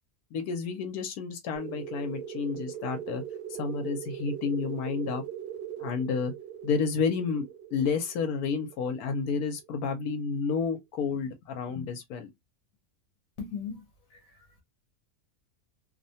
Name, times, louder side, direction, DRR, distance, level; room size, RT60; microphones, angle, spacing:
voice 1, 0.3-3.2 3.5-5.2 5.8-6.3 6.6-7.4 7.7-12.3, left 5 dB, 85° left, 1.1 m, -30 dB
sound 1, 1.5-9.9, right 9 dB, 70° right, 0.5 m, -40 dB
voice 2, 13.4-14.6, left 6 dB, 65° left, 1.3 m, -40 dB
2.8 x 2.1 x 2.6 m
omnidirectional pair, 1.6 m